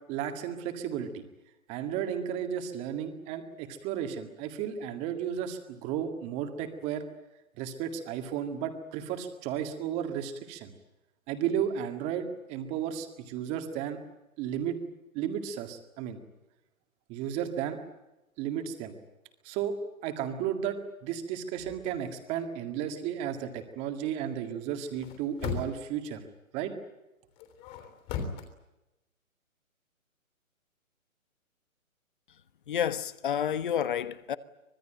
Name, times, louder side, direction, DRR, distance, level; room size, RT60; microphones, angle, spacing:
voice 1, 0.1-1.2 1.7-7.0 7.6-10.7 11.3-14.0 14.4-14.8 15.1-16.2 17.1-17.8 18.4-18.9 19.4-19.7 20.0-20.8 21.0-26.2 26.5-26.7, right 9 dB, 15° right, 2.0 m, -33 dB
sound 1, 21.6-22.0 24.9-25.9 27.4-28.5, left 6 dB, 20° left, 3.4 m, -37 dB
voice 2, 32.7-34.4, left 9 dB, 35° left, 1.3 m, -29 dB
25.0 x 20.5 x 9.0 m
hypercardioid pair, 160°, 42 cm